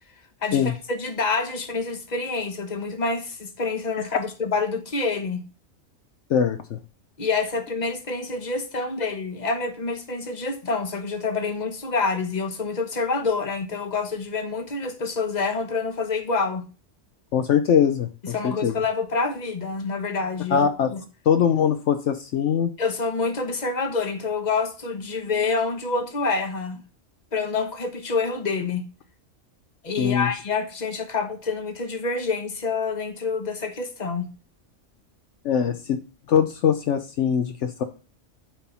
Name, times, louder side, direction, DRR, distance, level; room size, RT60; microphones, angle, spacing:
voice 1, 0.4-5.4 7.2-16.6 18.2-21.0 22.8-26.8 27.3-28.8 29.8-34.3, left 4 dB, 35° left, 1.3 m, -27 dB
voice 2, 6.3-6.8 17.3-18.7 20.5-20.9 21.3-22.7 30.0-30.3 35.4-36.0 36.3-37.8, left 8 dB, 70° left, 1.0 m, -22 dB
9.0 x 4.5 x 5.5 m
omnidirectional pair, 1.3 m